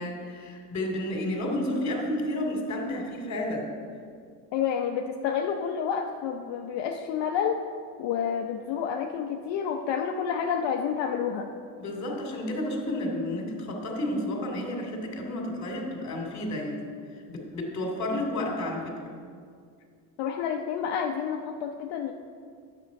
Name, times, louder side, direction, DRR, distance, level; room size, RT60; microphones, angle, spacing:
voice 1, 0.0-3.7 11.8-19.1, left 1 dB, 40° left, 1 dB, 2.7 m, -31 dB
voice 2, 4.5-7.6 8.0-11.5 20.2-22.1, left 7 dB, 70° left, 2 dB, 0.8 m, -29 dB
9.9 x 8.0 x 5.3 m, 2.2 s
supercardioid pair, 95°, 43 cm